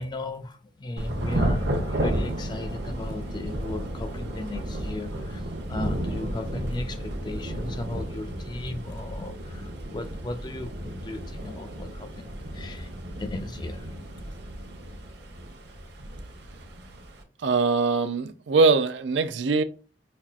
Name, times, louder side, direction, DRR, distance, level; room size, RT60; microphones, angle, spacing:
voice 1, 0.0-14.3, left 2 dB, 25° left, 0.4 m, -36 dB
Thunder / Rain, 1.0-17.2, right 1 dB, 60° right, 0.9 m, -33 dB
voice 2, 17.4-19.6, right 4 dB, 75° right, 0.5 m, -22 dB
5.4 x 2.4 x 2.4 m
head